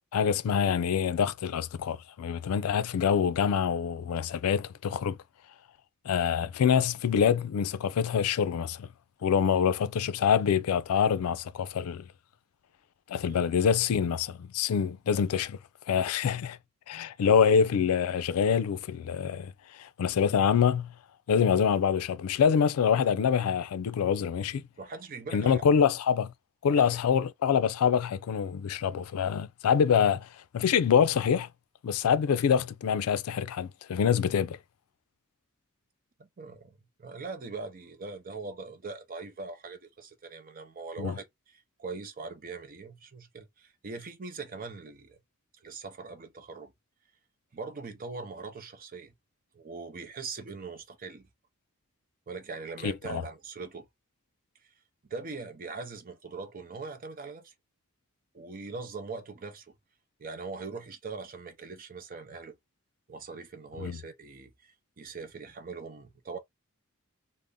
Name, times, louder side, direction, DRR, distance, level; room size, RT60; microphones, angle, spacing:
voice 1, 0.1-5.2 6.1-8.9 9.2-12.1 13.1-15.6 15.9-16.6 16.9-20.9 21.3-24.6 25.3-26.3 26.6-30.3 30.5-31.5 31.8-34.6 41.0-41.2 52.8-53.2 63.8-64.0, left 7 dB, 85° left, 0.4 m, -25 dB
voice 2, 24.8-25.6 26.7-27.0 36.2-45.2 45.6-46.7 47.5-49.1 49.5-51.3 52.3-53.9 55.0-57.5 58.3-59.7 60.2-62.6 63.1-66.4, right 4 dB, 40° right, 0.6 m, -41 dB
2.5 x 2.0 x 3.4 m
head